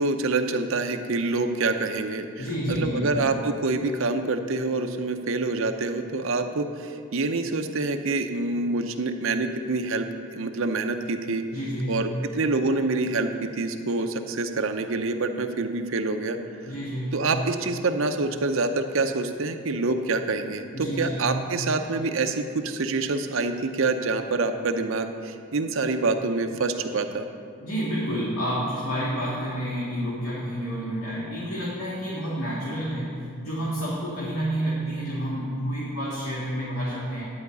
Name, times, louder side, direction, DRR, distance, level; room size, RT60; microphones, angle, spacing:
voice 1, 0.0-11.4 11.9-16.4 17.1-27.3, right 3 dB, 60° right, 6 dB, 0.7 m, -26 dB
voice 2, 2.4-3.0 11.5-12.0 16.6-17.1 20.7-21.3 27.6-37.3, equal, 70° left, -7 dB, 1.8 m, -29 dB
11.0 x 4.9 x 8.0 m, 2.4 s
head